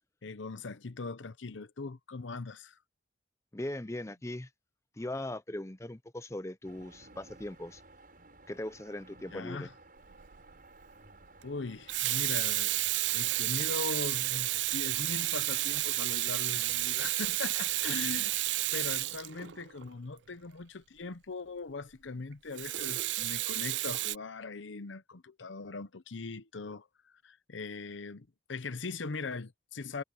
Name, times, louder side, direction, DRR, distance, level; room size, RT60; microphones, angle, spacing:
voice 1, 0.2-2.8 9.3-9.7 11.4-12.8 13.1-18.3 18.7-26.9 27.2-30.0, left 3 dB, 85° left, 0.8 m, -40 dB
voice 2, 3.5-4.5 5.0-7.8 8.5-9.7, left 1 dB, 15° left, 0.6 m, -39 dB
sound 1, 6.6-18.4, right 2 dB, 50° right, 8.0 m, -57 dB
Water tap faucet / Sink (filling or washing), 10.1-10.4 11.7-19.9 22.6-24.1, right 17 dB, 75° right, 0.5 m, -31 dB
head